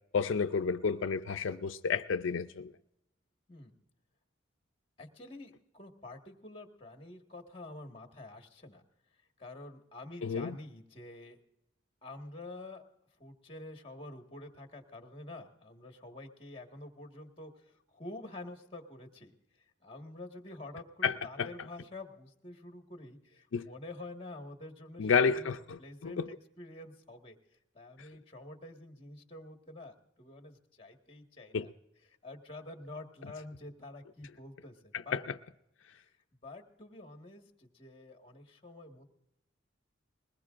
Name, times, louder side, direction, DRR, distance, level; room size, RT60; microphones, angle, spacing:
voice 1, 0.1-2.7 10.2-10.6 21.0-21.5 23.5-23.7 25.0-25.8 26.0-26.3 31.5-31.7 35.1-35.2, left 5 dB, 75° left, 0.5 m, -30 dB
voice 2, 5.0-8.8 9.4-11.4 12.0-12.8 13.2-19.3 19.8-27.4 27.7-31.7 32.2-35.2 35.9-36.1 36.4-39.0, left 2 dB, 30° left, 1.6 m, -48 dB
21.0 x 20.0 x 2.5 m
head